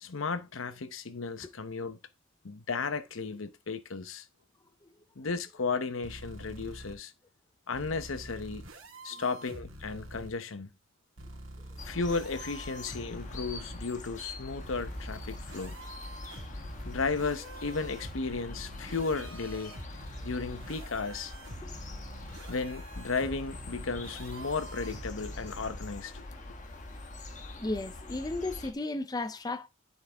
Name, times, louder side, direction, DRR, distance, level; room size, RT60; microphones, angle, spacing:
voice 1, 0.0-2.0 2.4-4.3 5.2-7.1 7.7-8.7 9.0-10.7 11.9-15.8 16.8-19.7 20.2-21.3 22.5-26.2, left 4 dB, 75° left, 0.8 m, -34 dB
sound 1, 6.0-6.9 7.7-10.3 11.2-13.8 14.6-25.8, right 1 dB, 75° right, 1.7 m, -47 dB
sound 2, 11.8-28.7, left 2 dB, 40° left, 1.4 m, -43 dB
voice 2, 27.6-29.7, left 2 dB, 20° left, 0.5 m, -34 dB
10.0 x 5.3 x 3.5 m
head